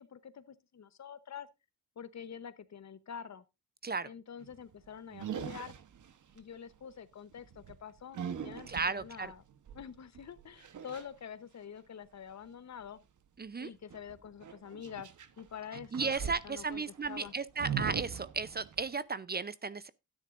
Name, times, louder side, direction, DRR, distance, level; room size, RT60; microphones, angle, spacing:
voice 1, 0.0-1.5 2.0-3.4 4.0-5.7 6.3-9.4 9.7-13.0 13.6-15.1 15.4-16.8 17.1-17.3, left 7 dB, 50° left, 0.9 m, -46 dB
sound 1, 4.4-4.7 5.1-6.4 7.3-11.1 13.9-15.4 15.7-19.0, right 8 dB, 60° right, 1.1 m, -41 dB
voice 2, 8.7-9.3 13.4-13.7 15.9-19.9, right 4 dB, 30° right, 0.5 m, -35 dB
12.5 x 9.7 x 2.5 m
cardioid pair, 85°, 35 cm